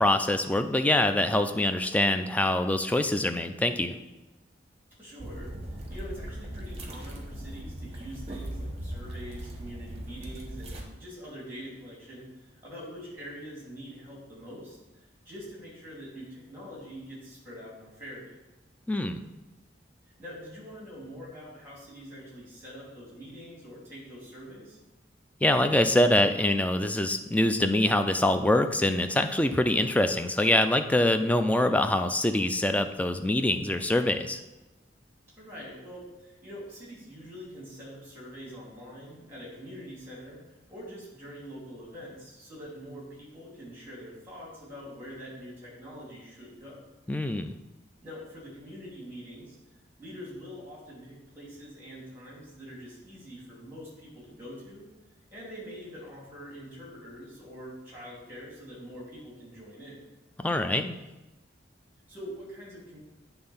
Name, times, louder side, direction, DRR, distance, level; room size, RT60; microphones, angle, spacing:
voice 1, 0.0-4.0 18.9-19.2 25.4-34.4 47.1-47.5 60.4-61.0, left 1 dB, 10° left, 7 dB, 0.3 m, -24 dB
voice 2, 5.0-18.3 20.2-24.8 35.4-46.8 48.0-49.6 50.0-54.9 55.3-60.0 62.1-63.0, equal, 10° right, -4 dB, 2.6 m, -44 dB
sound 1, 5.2-10.8, right 1 dB, 35° right, 1.0 m, -39 dB
8.7 x 3.5 x 5.6 m, 1.1 s
head